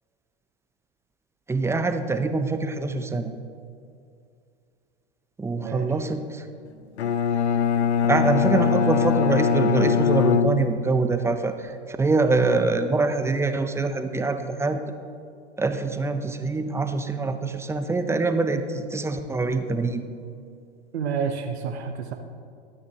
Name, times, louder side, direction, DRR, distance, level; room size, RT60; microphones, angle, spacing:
voice 1, 1.5-3.3 5.4-6.5 8.0-14.8 15.6-20.0, right 3 dB, 10° right, 8 dB, 0.7 m, -24 dB
Bowed string instrument, 7.0-11.2, left 6 dB, 80° left, 0.7 m, -22 dB
voice 2, 20.9-22.1, right 6 dB, 70° right, 5 dB, 1.1 m, -29 dB
21.5 x 9.4 x 3.0 m, 2.4 s
hypercardioid pair, 100°, 33 cm